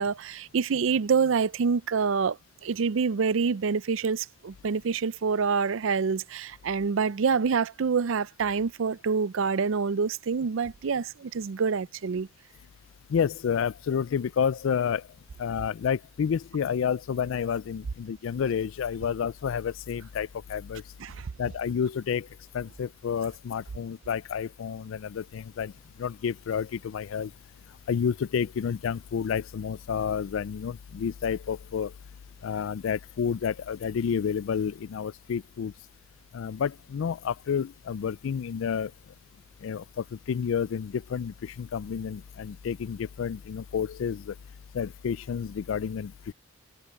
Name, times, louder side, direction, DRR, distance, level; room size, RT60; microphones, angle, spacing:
voice 1, 0.0-2.4 2.6-12.3 21.0-21.3, right 5 dB, 70° right, 0.5 m, -26 dB
voice 2, 13.1-15.1 15.4-20.8 21.4-22.3 22.5-25.7 26.0-27.3 27.9-31.9 32.4-35.7 36.3-38.9 39.6-44.3 44.7-46.3, left 7 dB, 70° left, 0.3 m, -30 dB
head